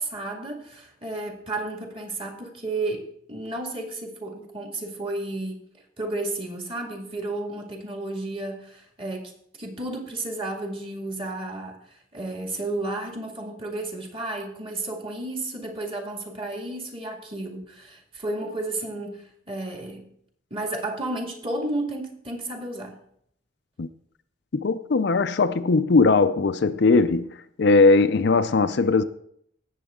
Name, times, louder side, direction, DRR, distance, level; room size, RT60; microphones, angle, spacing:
voice 1, 0.0-5.6 6.0-9.3 9.6-11.8 12.1-20.1 20.5-23.0, right 2 dB, 30° right, 2.0 m, -32 dB
voice 2, 24.5-27.3 27.6-29.0, left 3 dB, 60° left, 0.5 m, -19 dB
17.0 x 7.4 x 3.7 m
head